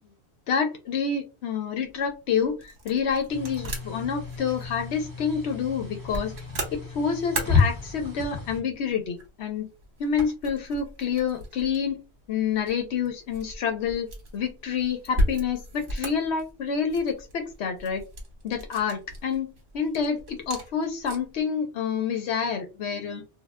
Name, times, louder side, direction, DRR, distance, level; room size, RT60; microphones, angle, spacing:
voice 1, 0.5-6.3 6.7-9.7 10.0-12.0 12.3-14.1 14.3-18.0 18.4-19.5 19.7-23.2, left 6 dB, 80° left, 5 dB, 0.9 m, -28 dB
sound 1, 1.8-21.4, equal, 55° right, 1.1 m, -37 dB
sound 2, 3.3-8.6, left 5 dB, 20° right, 0.8 m, -30 dB
2.3 x 2.1 x 3.5 m, 0.28 s
omnidirectional pair, 1.1 m